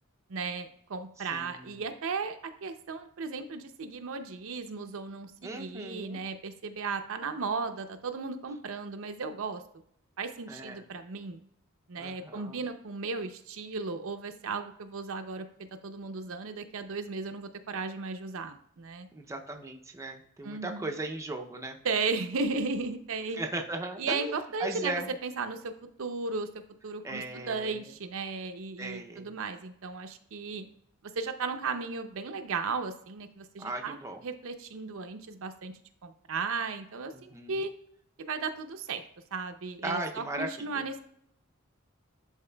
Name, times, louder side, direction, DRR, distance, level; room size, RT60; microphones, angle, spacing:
voice 1, 0.3-9.6 10.2-11.4 11.9-19.1 20.4-20.9 21.8-23.4 24.0-25.7 26.0-26.5 26.8-30.7 31.2-37.7 38.2-39.0 39.3-41.0, right 4 dB, 65° right, 7 dB, 0.6 m, -35 dB
voice 2, 1.3-1.8 5.4-6.2 10.5-10.8 12.0-12.5 19.1-21.8 23.4-24.3 24.6-25.1 27.0-27.8 28.8-29.3 33.6-34.2 37.1-37.6 39.8-40.8, right 2 dB, 15° right, 2 dB, 0.5 m, -37 dB
11.0 x 4.1 x 2.2 m, 0.69 s
head